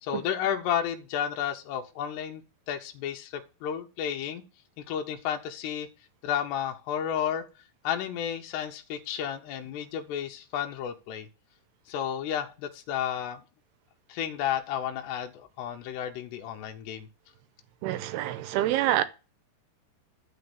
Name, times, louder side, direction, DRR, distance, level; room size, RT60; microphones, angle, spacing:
voice 1, 0.0-4.4 4.8-5.9 6.2-7.5 7.8-11.3 11.9-13.4 14.1-17.1, left 9 dB, 80° left, 3.0 m, -32 dB
voice 2, 17.8-19.0, right 13 dB, 80° right, 2.5 m, -26 dB
12.0 x 4.1 x 7.0 m
omnidirectional pair, 4.8 m